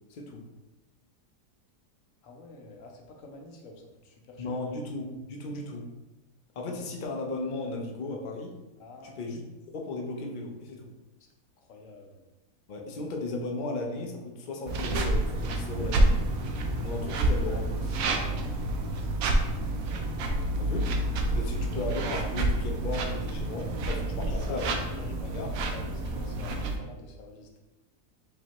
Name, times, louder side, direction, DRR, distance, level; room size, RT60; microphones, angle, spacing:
voice 1, 0.1-0.5 4.4-5.9 6.6-8.5 9.0-9.5 9.7-10.9 12.7-16.2 16.8-18.4 20.6-20.9 21.3-24.6 25.2-25.5, left 2 dB, 85° left, 1 dB, 0.4 m, -35 dB
voice 2, 2.2-4.6 8.8-9.2 11.6-12.2 19.0-19.1 19.4-20.1 24.3-27.6, left 3 dB, 65° left, 2 dB, 0.9 m, -46 dB
sound 1, 14.7-26.8, right 1 dB, 70° right, 1.0 m, -28 dB
5.1 x 3.0 x 2.9 m, 1.0 s
omnidirectional pair, 1.7 m